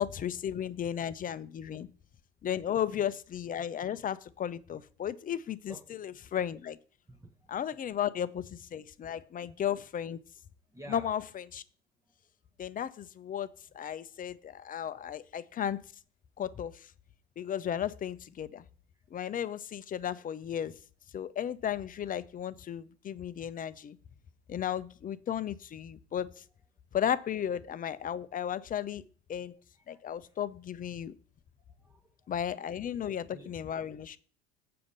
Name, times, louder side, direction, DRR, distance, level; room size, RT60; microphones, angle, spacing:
voice 1, 0.0-1.9 2.4-6.8 7.5-10.2 10.9-11.6 12.6-13.5 13.7-15.8 16.4-16.9 17.4-18.6 19.1-20.7 21.1-24.0 24.5-26.4 26.9-29.0 29.3-29.6 29.9-31.1 32.3-34.2, left 9 dB, 25° left, 0.6 m, -34 dB
voice 2, 2.7-3.1 5.7-6.2 7.1-7.5 10.7-11.1 13.6-13.7 14.9-15.1 29.0-29.1 29.9-30.4 31.7-32.3 33.3-33.6, right 1 dB, 10° right, 1.0 m, -52 dB
7.7 x 5.1 x 7.2 m
hypercardioid pair, 75°, 32 cm